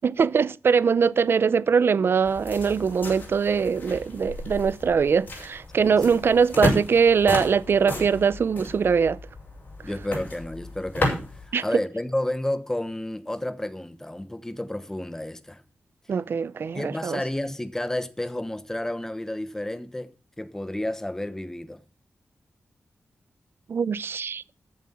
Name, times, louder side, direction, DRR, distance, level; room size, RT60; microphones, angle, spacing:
voice 1, 0.0-9.2 11.5-11.6 16.1-17.2 23.7-24.4, right 6 dB, 55° right, 0.5 m, -22 dB
sound 1, 2.2-11.5, left 1 dB, 40° left, 6.2 m, -32 dB
voice 2, 5.8-6.2 9.8-15.6 16.7-20.1 20.4-21.8, left 1 dB, 10° left, 1.0 m, -31 dB
13.5 x 7.4 x 5.6 m
wide cardioid pair, 135°, 5 cm